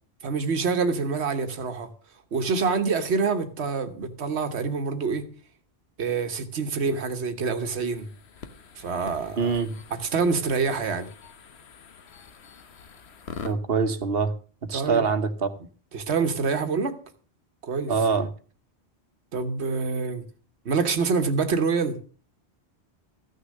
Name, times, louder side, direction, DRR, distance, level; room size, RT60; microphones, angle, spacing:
voice 1, 0.2-1.9 2.3-5.3 6.0-8.1 8.8-9.5 9.9-11.1 14.7-15.0 15.9-17.0 17.6-17.9 19.3-20.2 20.6-22.0, right 4 dB, 80° right, 1.4 m, -26 dB
sound 1, 7.5-13.5, left 6 dB, 75° left, 1.3 m, -45 dB
voice 2, 9.4-9.7 13.4-14.3 14.7-15.5 17.9-18.3, right 5 dB, 65° right, 1.2 m, -24 dB
14.0 x 6.6 x 6.4 m
omnidirectional pair, 1.1 m